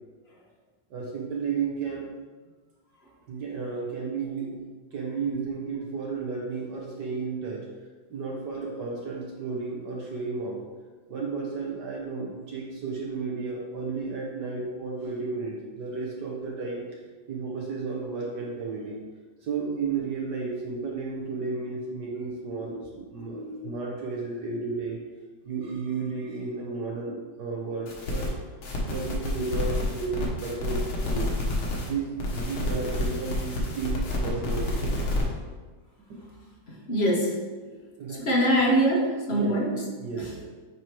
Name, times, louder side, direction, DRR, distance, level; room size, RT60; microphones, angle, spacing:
voice 1, 0.9-2.1 3.3-4.7 4.9-7.6 8.1-10.6 11.1-16.8 17.3-19.0 19.4-25.0 25.4-28.3 28.9-31.3 31.8-35.0 36.1-36.2 37.7-38.2 39.3-39.5 40.0-40.5, right 4 dB, 65° right, -3 dB, 1.5 m, -33 dB
voice 2, 23.2-23.6 36.7-37.4 38.2-39.8, right 1 dB, 35° left, -2 dB, 1.2 m, -24 dB
sound 1, 27.9-28.3 28.6-31.9 32.2-35.2, left 1 dB, 85° left, 2.1 m, -29 dB
9.0 x 3.1 x 4.5 m, 1.4 s
omnidirectional pair, 2.2 m